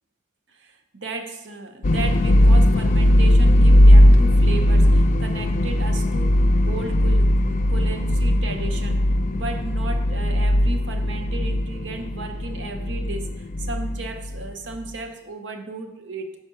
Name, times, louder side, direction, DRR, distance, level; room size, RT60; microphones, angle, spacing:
voice 1, 0.6-9.0 9.3-16.4, right 3 dB, 80° right, 6 dB, 0.8 m, -35 dB
sound 1, 1.8-14.7, left 1 dB, 40° left, 0.3 m, -18 dB
5.5 x 5.0 x 6.5 m, 0.90 s
head